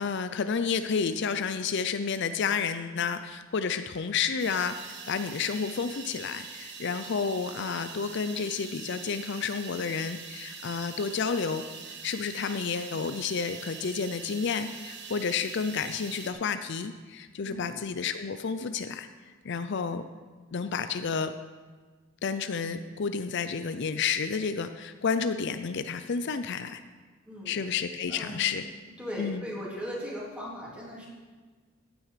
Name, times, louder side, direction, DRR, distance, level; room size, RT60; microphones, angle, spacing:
voice 1, 0.0-19.1 19.4-20.0 20.5-21.3 22.2-26.8 27.5-28.7 29.2-29.5, left 5 dB, 60° left, 10 dB, 0.5 m, -30 dB
sound 1, 4.4-16.3, right 5 dB, 60° right, 1.7 m, -43 dB
voice 2, 17.4-17.8 27.3-27.6 28.1-28.4 29.0-31.1, equal, 5° right, -6 dB, 3.3 m, -38 dB
15.5 x 9.2 x 5.0 m, 1.4 s
head